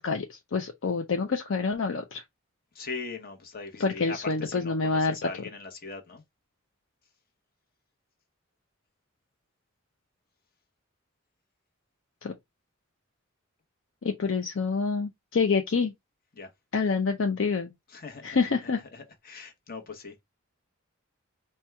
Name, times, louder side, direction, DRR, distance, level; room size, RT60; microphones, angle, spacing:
voice 1, 0.0-2.2 3.8-5.1 12.2-12.3 14.0-15.9 16.7-17.7 18.2-18.8, left 4 dB, 65° left, 0.5 m, -27 dB
voice 2, 2.7-6.2 16.4-16.5 17.9-18.4 18.6-20.2, left 4 dB, 45° left, 1.0 m, -40 dB
4.4 x 2.2 x 3.3 m
head